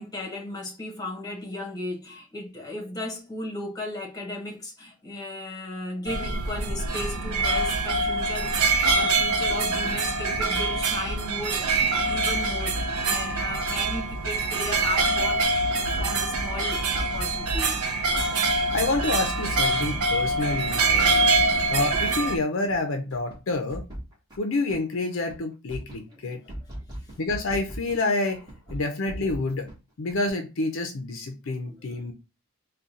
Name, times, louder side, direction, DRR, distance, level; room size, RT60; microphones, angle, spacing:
voice 1, 0.0-17.8 21.5-21.7 26.1-26.4 27.0-27.2 31.6-31.8, left 1 dB, 15° left, 1.1 m, -36 dB
sound 1, 6.1-22.4, right 3 dB, 80° right, 0.6 m, -25 dB
sound 2, 15.3-17.6 18.1-19.1 19.5-20.4 20.7-20.8 21.1-22.4 22.7-24.8 25.1-25.4 25.7-28.0 28.3-29.7 30.1-30.3, equal, 15° right, 1.2 m, -39 dB
voice 2, 18.7-21.3 21.7-23.9 24.4-26.4 27.2-28.4 28.7-29.7 30.0-32.1, left 2 dB, 60° left, 0.5 m, -28 dB
sound 3, 19.4-22.6, left 1 dB, ahead, 0.5 m, -46 dB
3.7 x 2.2 x 3.9 m
head